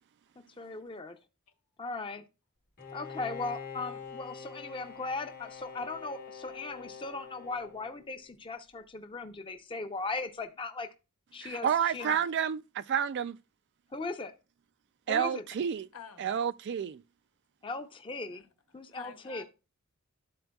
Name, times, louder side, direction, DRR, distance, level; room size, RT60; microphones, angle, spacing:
voice 1, 0.6-1.2 1.8-2.2 2.9-10.9 11.3-11.7 11.9-12.2 13.9-14.3 15.1-15.4 17.6-18.4 18.7-19.4, left 3 dB, 25° left, 0.6 m, -38 dB
Bowed string instrument, 2.8-8.4, left 6 dB, 40° left, 1.1 m, -45 dB
voice 2, 11.4-13.4 15.1-15.9 16.2-17.0, right 8 dB, 50° right, 0.3 m, -30 dB
voice 3, 15.9-16.3 18.3-18.4 18.9-19.4, left 6 dB, 80° left, 1.1 m, -48 dB
12.0 x 4.3 x 2.3 m
head